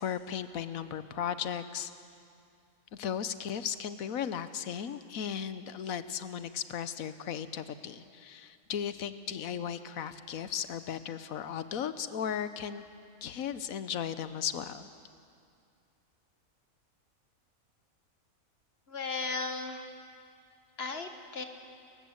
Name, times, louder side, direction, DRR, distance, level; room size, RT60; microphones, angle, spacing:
voice 1, 0.0-1.9 2.9-12.8 13.2-14.9, left 8 dB, 75° left, 12 dB, 1.3 m, -36 dB
voice 2, 18.9-19.8 20.8-21.4, left 4 dB, 45° left, 6 dB, 1.5 m, -35 dB
30.0 x 15.0 x 7.9 m, 2.4 s
omnidirectional pair, 1.5 m